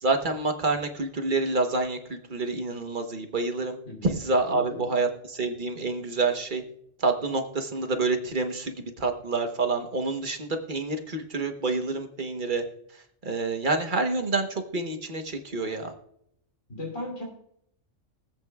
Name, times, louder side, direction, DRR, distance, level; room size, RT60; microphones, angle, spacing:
voice 1, 0.0-3.8 4.0-6.6 7.0-12.6 13.2-15.9, right 3 dB, 45° right, 5 dB, 1.2 m, -28 dB
voice 2, 3.8-4.2 4.5-4.8 5.7-5.8 16.7-17.2, left 1 dB, 80° left, -2 dB, 3.3 m, -36 dB
23.5 x 8.2 x 2.3 m, 0.72 s
omnidirectional pair, 1.3 m